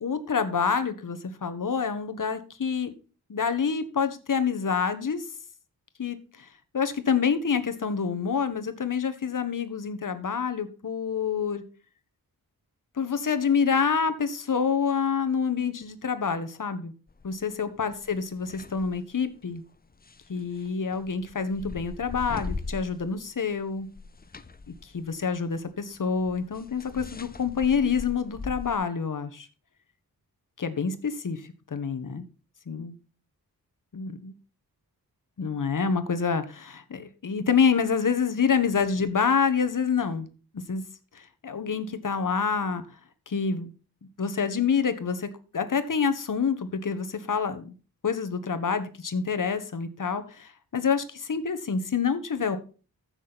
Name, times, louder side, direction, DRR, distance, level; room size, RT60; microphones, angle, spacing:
voice 1, 0.0-2.9 3.3-5.2 6.0-6.5 6.7-11.6 13.0-16.9 17.2-19.6 20.3-23.9 24.8-29.5 30.6-32.2 32.7-32.9 33.9-34.3 35.4-40.3 40.7-40.8 41.1-42.8 43.3-43.7 44.2-47.7 48.0-52.6, left 6 dB, 55° left, 10 dB, 1.5 m, -27 dB
sound 1, 17.1-17.4 17.9-19.0 19.9-23.3 23.6-28.8, left 3 dB, 25° left, 0.7 m, -40 dB
14.5 x 6.6 x 4.2 m, 0.36 s
wide cardioid pair, 105°, 37 cm